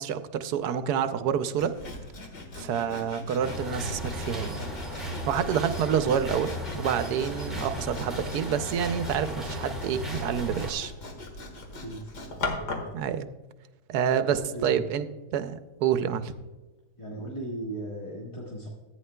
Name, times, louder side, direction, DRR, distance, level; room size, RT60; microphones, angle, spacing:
voice 1, 0.0-1.7 2.5-4.6 5.3-10.9 12.9-13.3 13.9-15.1 15.3-16.3, right 8 dB, 75° right, 11 dB, 1.1 m, -28 dB
Sawing, 1.6-13.0, left 3 dB, 80° left, 2.2 m, -40 dB
sound 1, 3.4-10.7, equal, ahead, 1.9 m, -35 dB
voice 2, 11.8-12.1 14.1-14.9 17.0-18.7, right 1 dB, 20° left, -4 dB, 1.4 m, -37 dB
14.0 x 9.3 x 2.2 m, 1.2 s
omnidirectional pair, 1.8 m